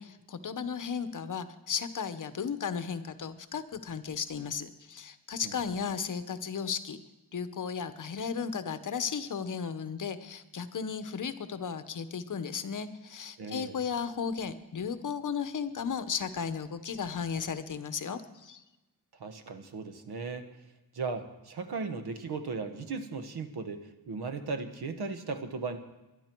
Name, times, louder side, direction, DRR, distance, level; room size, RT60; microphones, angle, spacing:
voice 1, 0.0-7.0 7.3-18.6, left 6 dB, 50° left, 11 dB, 1.0 m, -35 dB
voice 2, 13.4-13.8 19.2-20.5 20.9-25.8, right 4 dB, 80° right, 8 dB, 1.4 m, -37 dB
21.0 x 11.5 x 4.6 m, 1.1 s
wide cardioid pair, 125°, 39 cm